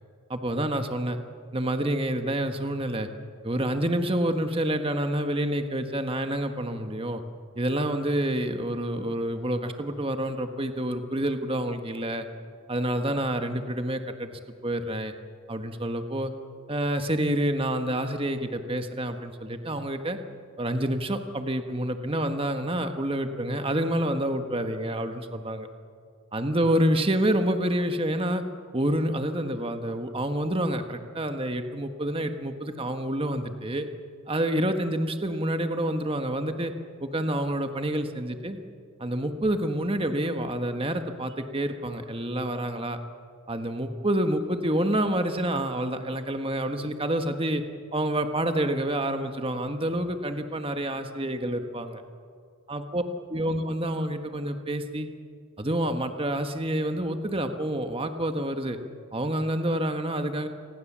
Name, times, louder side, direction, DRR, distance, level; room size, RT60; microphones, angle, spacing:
voice 1, 0.3-1.2 1.5-3.1 3.4-7.2 7.5-12.2 12.7-15.1 15.5-16.3 16.7-20.2 20.6-25.7 26.3-28.4 28.7-33.9 34.3-36.7 37.0-38.6 39.0-43.0 43.5-47.6 47.9-52.0 52.7-53.0 53.3-55.1 55.6-58.8 59.1-60.5, right 1 dB, 25° right, 7 dB, 1.3 m, -28 dB
28.5 x 20.5 x 7.4 m, 2.2 s
head